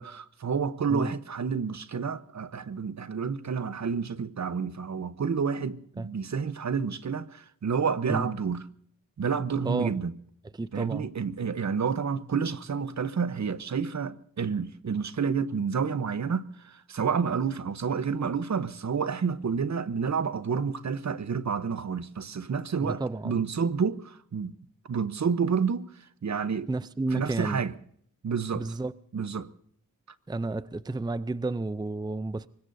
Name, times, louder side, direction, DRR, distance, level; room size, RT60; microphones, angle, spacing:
voice 1, 0.0-8.6 9.2-10.1 10.7-24.5 24.9-25.9 26.2-26.7 27.1-27.7 28.2-28.7 29.1-29.5, right 6 dB, 55° right, 1.0 m, -29 dB
voice 2, 10.5-11.1 22.8-23.4 26.7-27.6 28.5-28.9 30.3-32.5, right 2 dB, 10° right, 0.5 m, -31 dB
24.0 x 20.5 x 2.7 m
cardioid pair, 60°, 33 cm